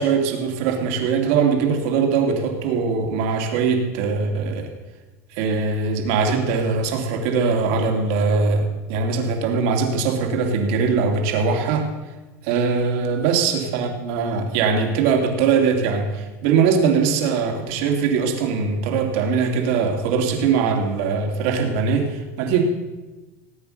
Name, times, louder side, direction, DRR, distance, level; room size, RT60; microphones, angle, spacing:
voice 1, 0.0-4.7 5.3-11.9 12.4-22.6, right 5 dB, 65° right, 3 dB, 2.8 m, -21 dB
17.5 x 8.9 x 6.6 m, 1.2 s
supercardioid pair, 155°, 8 cm